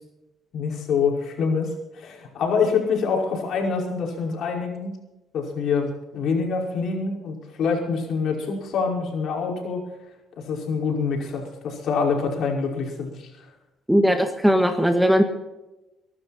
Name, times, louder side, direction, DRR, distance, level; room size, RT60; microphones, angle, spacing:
voice 1, 0.5-5.0 5.3-9.8 10.5-13.3, left 5 dB, 60° left, 0 dB, 5.4 m, -25 dB
voice 2, 13.9-15.2, equal, ahead, 6 dB, 1.7 m, -18 dB
24.0 x 12.0 x 4.3 m, 1.0 s
cardioid pair, 115°, 0 cm